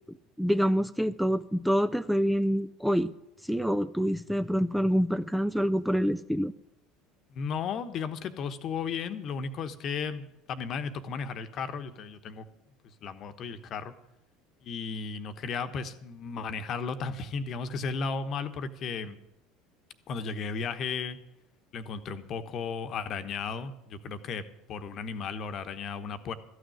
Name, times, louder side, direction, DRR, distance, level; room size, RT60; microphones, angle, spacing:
voice 1, 0.4-3.1 3.4-6.5, equal, ahead, 12 dB, 0.4 m, -26 dB
voice 2, 7.3-12.4 13.0-13.9 14.6-19.2 20.1-21.2 21.7-24.4 24.7-26.3, left 5 dB, 45° left, 10 dB, 1.1 m, -34 dB
13.5 x 6.4 x 9.3 m, 0.89 s
hypercardioid pair, 70°, 0 cm